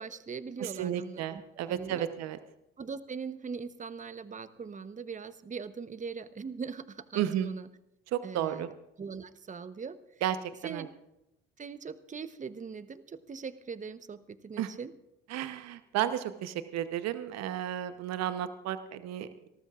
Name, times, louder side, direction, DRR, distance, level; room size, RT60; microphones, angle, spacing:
voice 1, 0.0-1.4 1.7-2.1 2.8-7.7 8.2-8.7 9.0-10.0 10.6-10.9 11.6-14.9, right 5 dB, 25° right, 13 dB, 0.9 m, -41 dB
voice 2, 0.6-2.4 7.1-7.5 8.1-8.7 10.2-10.9 14.6-14.7 15.3-19.3, right 11 dB, 60° right, 11 dB, 1.0 m, -33 dB
25.5 x 14.0 x 2.5 m, 0.86 s
hypercardioid pair, 65°, 30 cm